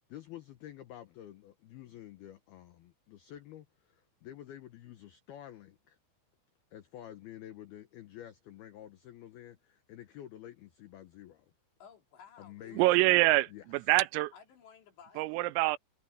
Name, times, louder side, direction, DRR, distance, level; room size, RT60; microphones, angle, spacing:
voice 1, 0.0-6.0 6.7-11.5 12.4-12.9 13.5-13.7, left 12 dB, 80° left, 2.3 m, -49 dB
voice 2, 11.8-13.1 14.3-15.3, left 7 dB, 60° left, 5.0 m, -55 dB
voice 3, 12.7-14.3 15.2-15.8, right 19 dB, 90° right, 3.3 m, -25 dB
omnidirectional pair, 6.0 m